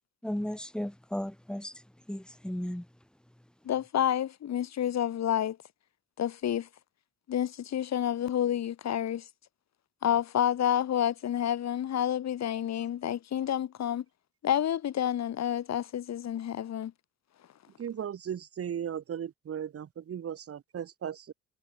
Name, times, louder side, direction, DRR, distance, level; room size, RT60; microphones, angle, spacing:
voice 1, 0.2-2.9, left 1 dB, 5° left, 1.3 m, -35 dB
voice 2, 3.7-5.6 6.2-6.7 7.3-9.2 10.0-14.0 14.4-16.9, left 10 dB, 60° left, 2.2 m, -29 dB
voice 3, 17.8-21.3, right 9 dB, 50° right, 1.6 m, -36 dB
cardioid pair, 90°, 30 cm